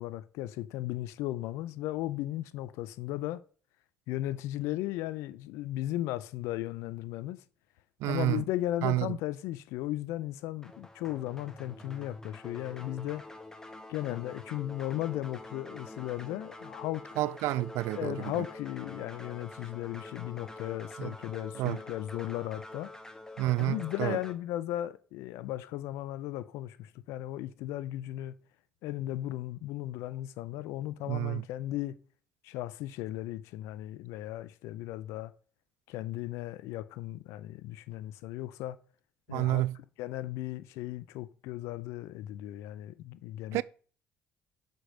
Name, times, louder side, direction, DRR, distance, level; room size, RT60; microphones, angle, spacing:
voice 1, 0.0-3.4 4.1-7.4 8.0-13.2 13.9-17.0 18.0-22.9 23.6-28.3 28.8-31.9 32.4-35.3 35.9-38.8 39.3-39.6 40.0-43.6, left 15 dB, 85° left, 0.5 m, -36 dB
voice 2, 8.0-8.4 8.8-9.2 17.2-18.3 21.0-21.1 21.6-21.8 23.4-24.2 31.1-31.4 39.3-39.7 43.5-43.6, right 17 dB, 80° right, 0.4 m, -29 dB
sound 1, 10.6-24.3, left 2 dB, 10° left, 1.4 m, -46 dB
5.9 x 5.2 x 6.3 m
supercardioid pair, 75°, 5 cm